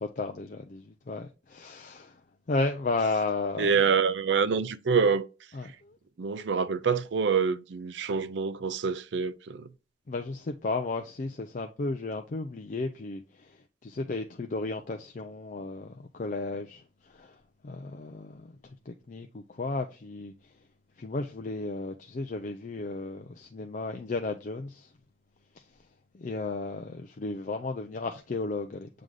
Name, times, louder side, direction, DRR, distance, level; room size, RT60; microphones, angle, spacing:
voice 1, 0.0-2.2 2.5-3.8 5.5-6.0 10.1-17.4 17.6-18.5 18.9-20.3 21.0-24.9 26.1-28.9, left 3 dB, 45° left, 0.4 m, -34 dB
voice 2, 3.6-5.3 6.2-9.7, right 5 dB, 80° right, 0.5 m, -26 dB
7.6 x 3.4 x 3.6 m
head